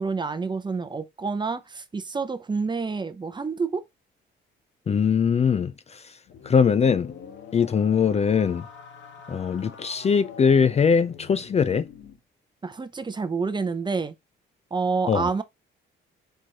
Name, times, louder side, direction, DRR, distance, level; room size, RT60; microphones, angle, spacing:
voice 1, 0.0-3.8 12.6-14.1 14.7-15.4, right 4 dB, 25° right, 0.6 m, -28 dB
voice 2, 4.9-5.7 6.4-7.1 7.5-8.6 9.3-11.9 15.1-15.3, left 6 dB, 35° left, 0.4 m, -21 dB
sound 1, 6.2-12.2, left 6 dB, 65° left, 1.2 m, -44 dB
4.5 x 2.5 x 4.6 m
cardioid pair, 90°, 20 cm